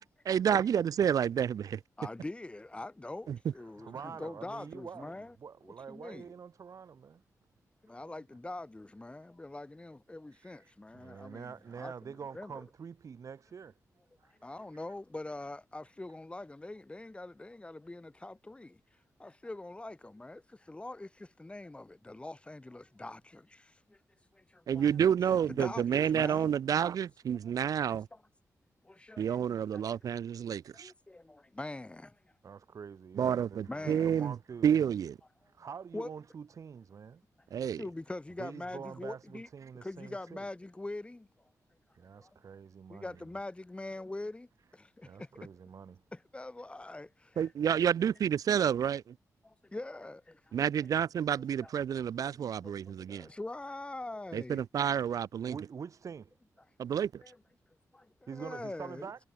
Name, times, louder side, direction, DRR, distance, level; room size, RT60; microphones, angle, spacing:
voice 1, 0.3-1.8 3.3-3.4 24.7-28.1 29.2-30.9 33.2-34.4 34.6-35.2 37.5-37.8 47.4-49.1 50.5-53.3 54.3-55.6 56.8-57.2, right 8 dB, 85° right, 2.1 m, -29 dB
voice 2, 2.0-5.3 5.6-6.3 7.8-12.6 14.2-18.8 19.2-24.0 24.3-24.9 25.5-26.5 27.9-28.2 28.8-29.8 30.7-32.2 33.2-33.3 33.7-34.3 35.9-36.1 37.8-39.5 39.8-41.3 42.2-42.3 42.9-44.5 44.7-45.5 46.1-47.5 49.4-50.6 51.6-51.7 52.4-54.6 57.2-57.4 57.9-59.1, left 2 dB, 20° left, 5.2 m, -44 dB
voice 3, 3.8-7.2 10.3-13.7 14.2-14.8 32.4-34.7 35.5-37.2 38.4-40.5 41.9-43.2 45.0-46.0 55.5-56.3 56.9-57.0 58.3-59.2, right 6 dB, 65° right, 6.6 m, -46 dB
cardioid pair, 90°, 6 cm